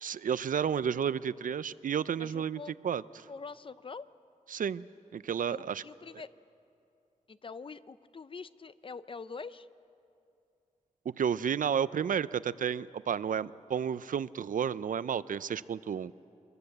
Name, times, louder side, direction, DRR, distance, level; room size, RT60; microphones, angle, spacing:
voice 1, 0.0-3.3 4.5-4.9 5.1-5.8 11.2-16.1, right 8 dB, 80° right, 17 dB, 0.5 m, -32 dB
voice 2, 2.2-2.7 3.3-4.1 5.5-6.3 7.3-9.7, left 4 dB, 40° left, 14 dB, 0.6 m, -44 dB
25.0 x 21.5 x 7.9 m, 2.6 s
wide cardioid pair, 150°, 14 cm